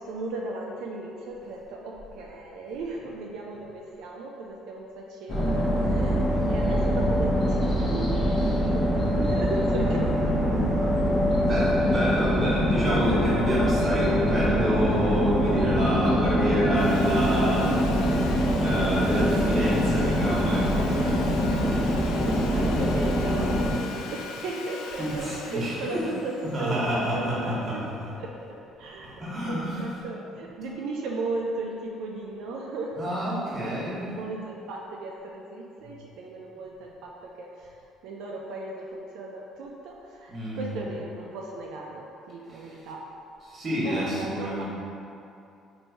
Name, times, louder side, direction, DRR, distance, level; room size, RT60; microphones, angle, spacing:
voice 1, 0.0-11.3 13.8-14.6 19.3-19.5 22.3-27.8 28.2-28.3 28.8-29.2 29.5-37.8 38.0-43.0 43.8-44.7, right 2 dB, 75° right, -2 dB, 0.3 m, -36 dB
sound 1, 5.3-23.7, equal, 35° left, 0.9 m, -24 dB
voice 2, 11.3-21.5 25.0-26.0 26.5-28.1 29.2-29.9 33.0-34.1 40.3-40.6 43.5-44.7, equal, 25° right, -8 dB, 1.1 m, -28 dB
Sawing, 16.7-27.8, left 4 dB, 85° left, 0.3 m, -41 dB
3.1 x 2.6 x 4.4 m, 2.6 s
cardioid pair, 140°, 0 cm